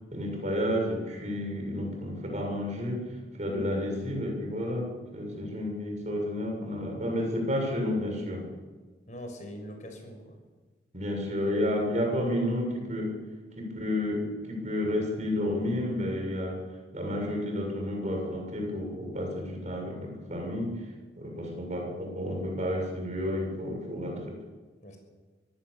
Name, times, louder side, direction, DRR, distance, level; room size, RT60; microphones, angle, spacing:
voice 1, 0.1-3.0 3.4-8.5 10.9-13.2 13.6-16.6 16.9-20.9 21.2-24.4, left 1 dB, 40° right, 1 dB, 7.2 m, -31 dB
voice 2, 5.3-5.6 9.1-10.4 24.8-25.0, equal, 40° left, 3 dB, 5.9 m, -43 dB
24.5 x 17.0 x 7.1 m, 1.3 s
head